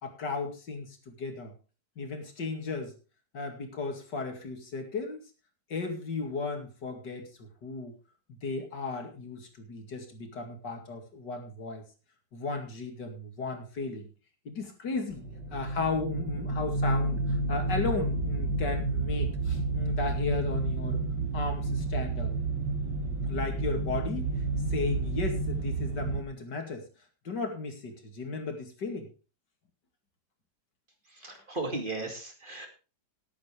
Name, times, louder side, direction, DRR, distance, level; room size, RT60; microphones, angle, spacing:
voice 1, 0.0-1.5 2.0-2.9 3.3-5.2 5.7-7.9 8.4-11.8 12.3-14.0 14.4-15.2 15.5-21.0 21.3-22.3 23.2-24.4 24.7-26.8 27.2-29.1 31.3-31.4, left 4 dB, 80° left, 4 dB, 3.0 m, -35 dB
sound 1, 15.1-26.2, right 3 dB, 80° right, 2.0 m, -30 dB
voice 2, 31.1-32.7, right 2 dB, 30° right, 3 dB, 2.6 m, -36 dB
18.5 x 8.7 x 3.4 m, 0.33 s
omnidirectional pair, 1.8 m